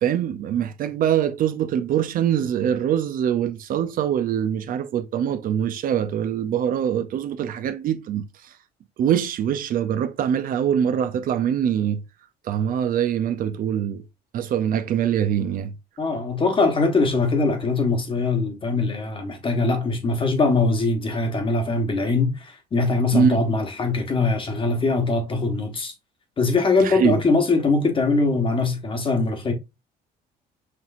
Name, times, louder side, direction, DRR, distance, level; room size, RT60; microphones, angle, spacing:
voice 1, 0.0-8.5 9.0-12.0 12.4-14.0 14.3-15.7 23.1-23.4 26.8-27.2, right 9 dB, 55° right, 0.5 m, -23 dB
voice 2, 16.0-25.9 26.4-29.5, left 3 dB, 30° left, 1.3 m, -22 dB
5.8 x 3.0 x 2.5 m
cardioid pair, 110°, 17 cm